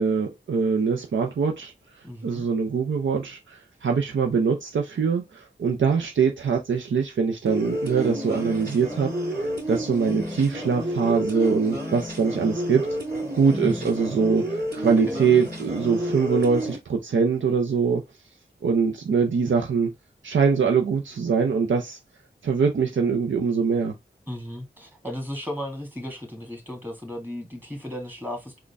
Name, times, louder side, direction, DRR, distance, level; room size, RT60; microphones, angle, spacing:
voice 1, 0.0-1.7 2.2-9.1 9.4-12.9 13.3-18.0 18.6-19.9 20.2-22.0 22.4-23.9, right 5 dB, 80° right, 0.5 m, -23 dB
voice 2, 2.0-2.5 13.6-13.9 15.1-15.2 24.3-28.6, left 1 dB, 10° right, 1.5 m, -35 dB
sound 1, 7.5-16.8, equal, 55° right, 2.3 m, -30 dB
3.8 x 2.2 x 3.3 m
cardioid pair, 50°, 19 cm